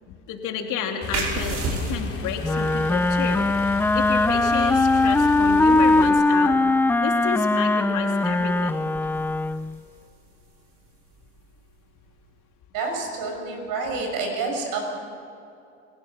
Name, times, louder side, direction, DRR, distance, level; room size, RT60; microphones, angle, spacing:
voice 1, 0.1-1.6 1.8-6.6 7.0-8.8, left 7 dB, 60° left, 3 dB, 3.1 m, -31 dB
sound 1, 1.0-6.1, left 6 dB, 40° left, 3.5 m, -35 dB
sound 2, 1.1-12.4, right 3 dB, 50° right, 5.4 m, -37 dB
Wind instrument woodwind instrument, 2.4-9.8, left 2 dB, 5° left, 0.4 m, -20 dB
voice 2, 12.7-14.8, right 4 dB, 65° right, 2 dB, 6.2 m, -28 dB
30.0 x 16.5 x 6.1 m, 2.6 s
hypercardioid pair, 80°, 36 cm